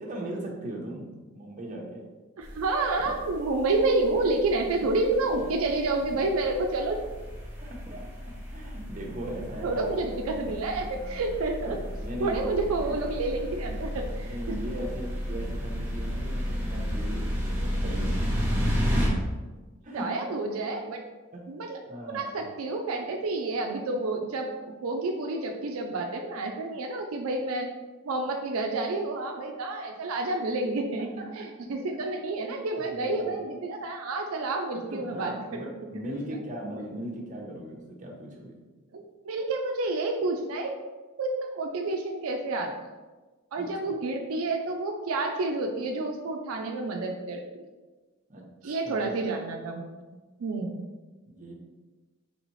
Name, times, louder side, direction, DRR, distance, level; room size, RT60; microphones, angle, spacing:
voice 1, 0.0-2.1 4.8-4.9 7.6-8.0 8.5-10.2 10.9-11.3 11.6-11.8 12.0-12.6 14.3-18.3 19.8-20.1 21.3-21.4 21.9-22.4 31.2-31.4 32.4-33.4 34.7-38.5 43.6-44.0 48.3-49.0 51.3-51.5, right 1 dB, 35° right, -2 dB, 0.7 m, -39 dB
sound 1, 2.4-19.1, equal, 10° right, 0.8 m, -33 dB
voice 2, 2.4-7.0 9.6-11.8 12.2-14.4 14.8-14.9 19.9-21.0 21.5-21.8 22.1-24.5 24.8-27.7 28.0-31.1 31.3-35.6 36.1-36.4 38.9-40.7 41.2-42.7 43.5-47.6 48.6-49.9 50.4-50.8, right 2 dB, 80° right, 2 dB, 0.4 m, -29 dB
4.0 x 3.4 x 3.0 m, 1.2 s
head